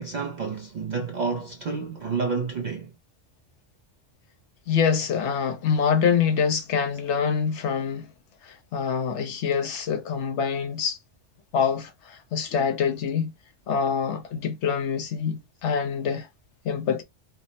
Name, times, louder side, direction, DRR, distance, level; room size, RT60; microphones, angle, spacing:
voice 1, 0.0-2.9, right 5 dB, 60° right, 0.4 m, -29 dB
voice 2, 4.7-8.1 8.4-11.0 11.5-13.3 13.7-16.3 16.6-17.0, left 6 dB, 75° left, 1.0 m, -25 dB
3.3 x 2.0 x 3.9 m
omnidirectional pair, 1.2 m